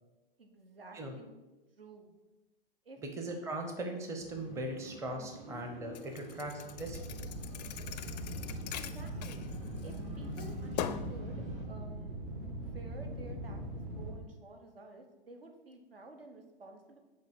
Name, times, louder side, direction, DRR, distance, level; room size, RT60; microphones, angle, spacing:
voice 1, 0.4-1.3 1.8-2.1 2.8-3.0 8.7-9.4 9.8-11.4 11.7-12.2 12.6-17.0, right 2 dB, 75° right, 4 dB, 1.0 m, -52 dB
voice 2, 3.0-7.0, right 1 dB, 10° right, 3 dB, 0.6 m, -39 dB
sound 1, 4.1-11.6, equal, 40° right, 2.2 m, -48 dB
Thump thud, 5.9-10.0 10.4-11.2, left 10 dB, 45° left, 0.4 m, -42 dB
sound 2, 6.8-14.1, right 1 dB, 60° right, 2.0 m, -41 dB
7.3 x 2.7 x 5.6 m, 1.1 s
figure-of-eight pair, 100°, 29 cm